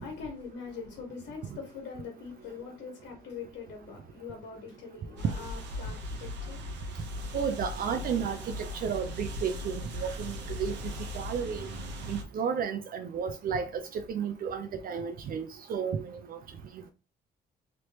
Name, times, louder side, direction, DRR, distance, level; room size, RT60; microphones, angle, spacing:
voice 1, 0.0-6.9, left 5 dB, 75° left, 1.1 m, -43 dB
sound 1, 5.2-12.2, left 1 dB, 75° right, 0.9 m, -38 dB
voice 2, 7.3-10.7 11.1-11.7 12.1-16.4, right 7 dB, 55° right, 0.5 m, -33 dB
3.1 x 3.1 x 2.9 m
cardioid pair, 105°, 18 cm